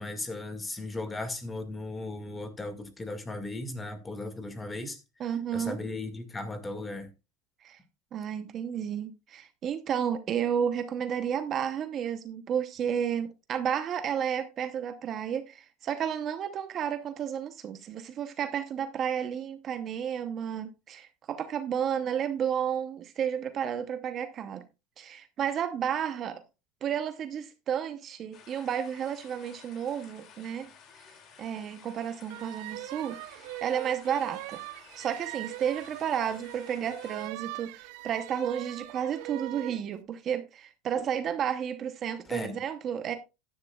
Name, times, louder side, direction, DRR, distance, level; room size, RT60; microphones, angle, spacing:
voice 1, 0.0-5.0 5.5-7.1 42.3-42.6, left 2 dB, 15° left, 1.9 m, -37 dB
voice 2, 5.2-5.8 7.6-7.8 8.1-24.6 25.0-26.4 26.8-30.7 31.1-34.6 34.9-43.1, right 8 dB, 35° right, 0.8 m, -32 dB
sound 1, 28.3-37.3, left 7 dB, 40° left, 2.5 m, -54 dB
sound 2, 32.3-39.8, right 19 dB, 65° right, 0.5 m, -41 dB
14.0 x 10.5 x 2.3 m
supercardioid pair, 140°, 0 cm